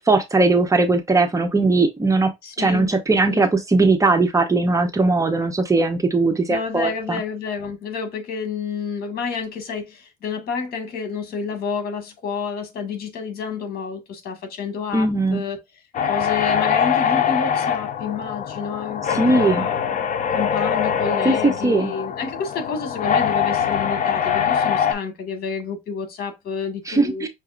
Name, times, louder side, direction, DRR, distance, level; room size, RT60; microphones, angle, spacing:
voice 1, 0.0-2.3 2.6-7.2 14.9-15.4 19.1-19.6 21.2-21.9 26.9-27.3, right 3 dB, 20° right, 0.8 m, -19 dB
voice 2, 2.4-2.9 3.3-3.4 6.5-15.6 16.1-19.8 20.3-27.3, left 5 dB, 65° left, 1.7 m, -29 dB
Breathing man machine, 15.9-24.9, left 8 dB, 50° left, 0.8 m, -23 dB
5.8 x 2.7 x 2.4 m
cardioid pair, 110°, 17 cm